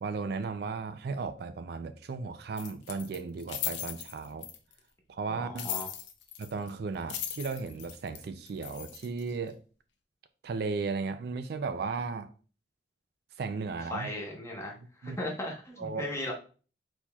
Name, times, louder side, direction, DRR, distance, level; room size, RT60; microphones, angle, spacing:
voice 1, 0.0-4.5 5.1-5.7 6.4-9.6 10.4-12.3 13.4-14.1 15.0-15.2 15.8-16.1, right 4 dB, 60° right, 0.4 m, -35 dB
sound 1, 2.6-4.8 5.6-6.7 6.9-9.3, left 10 dB, 90° left, 0.6 m, -38 dB
voice 2, 5.3-5.9 13.9-14.7 15.0-16.3, left 1 dB, 15° left, 1.1 m, -37 dB
4.5 x 4.1 x 2.3 m
head